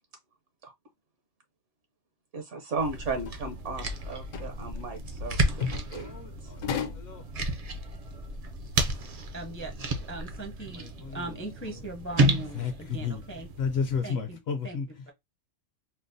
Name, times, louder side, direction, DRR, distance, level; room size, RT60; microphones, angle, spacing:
voice 1, 2.3-6.1 6.4-6.5, right 3 dB, 70° right, 1.1 m, -35 dB
sound 1, 2.8-14.0, right 1 dB, 50° right, 0.4 m, -32 dB
sound 2, 2.9-3.4 3.8-4.0 4.2-4.5 4.8-5.0 5.6-6.1 6.5-7.1, left 7 dB, 80° left, 1.1 m, -36 dB
voice 2, 6.0-6.6 6.9-7.2 10.7-11.2 12.5-13.2 13.6-14.9, left 6 dB, 65° left, 0.7 m, -32 dB
voice 3, 9.3-9.7 10.1-10.9 11.1-13.5 14.0-14.8 15.1-15.2, right 2 dB, 15° left, 0.4 m, -39 dB
4.5 x 2.0 x 2.5 m
omnidirectional pair, 1.3 m